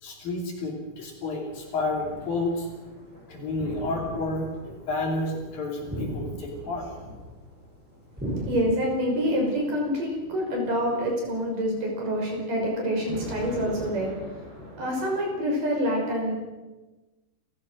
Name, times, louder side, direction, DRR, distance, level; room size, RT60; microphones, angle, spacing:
voice 1, 0.0-2.7 3.3-6.9, left 2 dB, 55° left, 1 dB, 4.5 m, -30 dB
sound 1, 1.5-14.9, equal, 25° right, 7.1 m, -45 dB
sound 2, 1.9-2.4 3.5-4.3 5.9-6.8 8.2-9.1, right 1 dB, ahead, 5.2 m, -35 dB
voice 2, 8.5-14.1 14.8-16.3, equal, 45° right, 0 dB, 7.0 m, -26 dB
28.5 x 15.5 x 6.4 m, 1.2 s
omnidirectional pair, 5.3 m